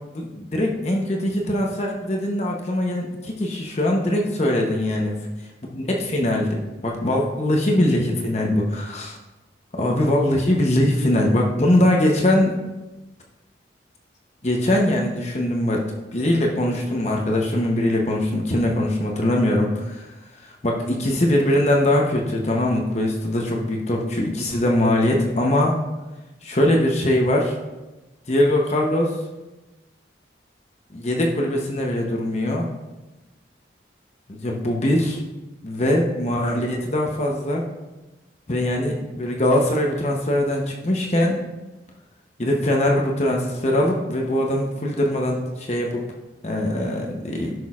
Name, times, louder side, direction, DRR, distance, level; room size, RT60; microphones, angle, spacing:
voice 1, 0.1-5.1 5.7-9.2 9.7-12.5 14.4-15.8 16.1-20.1 20.6-25.8 26.4-27.6 28.3-29.1 30.9-32.7 34.3-35.2 35.6-37.6 38.5-41.4 42.4-46.0 46.4-47.5, left 1 dB, 35° left, 0 dB, 0.8 m, -21 dB
13.5 x 6.1 x 2.4 m, 1.1 s
head